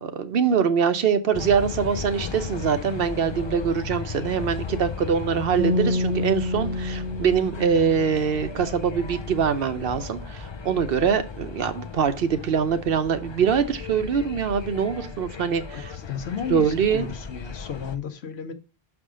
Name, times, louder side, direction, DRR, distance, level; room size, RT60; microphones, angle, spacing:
voice 1, 0.0-16.0 16.5-17.1, right 7 dB, 65° right, 0.9 m, -23 dB
sound 1, 1.3-18.0, left 5 dB, 40° left, 0.4 m, -36 dB
sound 2, 5.6-8.8, left 2 dB, 5° left, 2.8 m, -28 dB
voice 2, 15.7-18.5, left 7 dB, 75° left, 1.1 m, -33 dB
6.4 x 4.8 x 4.9 m
omnidirectional pair, 1.1 m